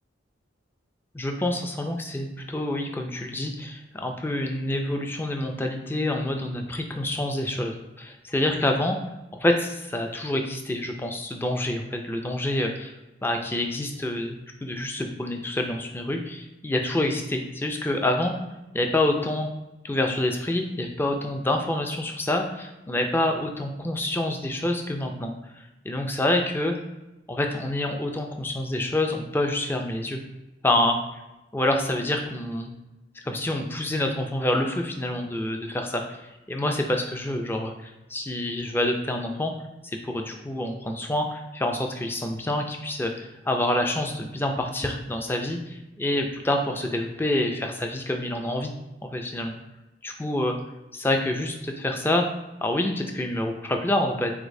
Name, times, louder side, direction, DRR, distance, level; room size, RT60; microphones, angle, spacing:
voice 1, 1.1-9.0 9.4-12.9 13.2-18.3 18.7-19.5 19.8-26.8 27.3-30.2 30.6-31.0 31.5-32.7 33.2-39.5 39.8-48.7 49.0-49.5 50.0-50.5 50.9-52.3 52.6-54.3, left 1 dB, 10° left, 3 dB, 0.3 m, -27 dB
4.9 x 3.9 x 2.6 m, 1.0 s
head